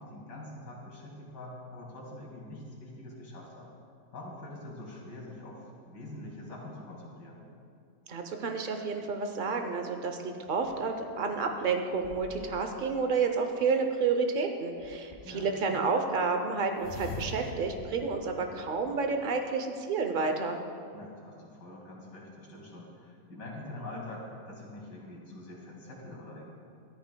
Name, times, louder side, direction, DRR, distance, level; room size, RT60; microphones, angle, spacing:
voice 1, 0.0-3.7 4.1-7.4 15.2-15.8 20.9-26.5, left 1 dB, 80° left, -3 dB, 2.8 m, -45 dB
voice 2, 8.1-20.6, right 4 dB, 90° right, 5 dB, 0.4 m, -30 dB
sound 1, 10.5-12.9 14.8-15.5 16.8-19.2, left 1 dB, 40° left, 1.0 m, -45 dB
14.0 x 13.5 x 2.2 m, 2.4 s
omnidirectional pair, 1.8 m